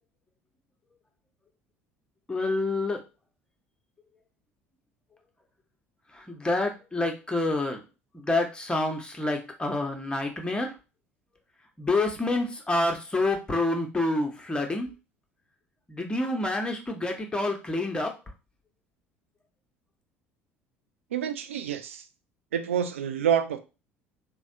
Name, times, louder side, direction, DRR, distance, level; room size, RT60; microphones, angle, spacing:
voice 1, 2.3-3.0 6.1-7.8 8.2-10.7 11.8-14.9 15.9-18.1, left 2 dB, 15° left, 0.9 m, -28 dB
voice 2, 21.1-22.0 22.5-23.6, right 8 dB, 85° right, 0.4 m, -27 dB
3.3 x 2.2 x 2.6 m
hypercardioid pair, 65°, 7 cm